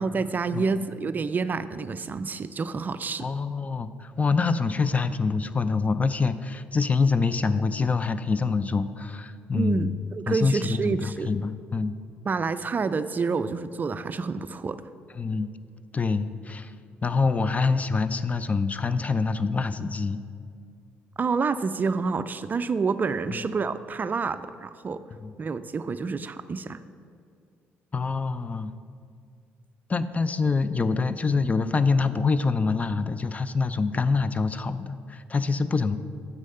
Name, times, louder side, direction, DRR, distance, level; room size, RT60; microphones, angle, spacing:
voice 1, 0.0-3.3 9.5-11.3 12.3-14.8 21.2-25.0 25.4-26.8, right 4 dB, 35° right, 12 dB, 0.3 m, -28 dB
voice 2, 3.2-9.9 10.3-12.0 15.2-15.5 15.9-16.7 17.0-20.2 23.3-23.4 25.2-25.3 27.9-28.7 29.9-36.0, left 4 dB, 30° left, 13 dB, 0.4 m, -25 dB
7.4 x 6.3 x 5.5 m, 2.3 s
supercardioid pair, 65°, 5 cm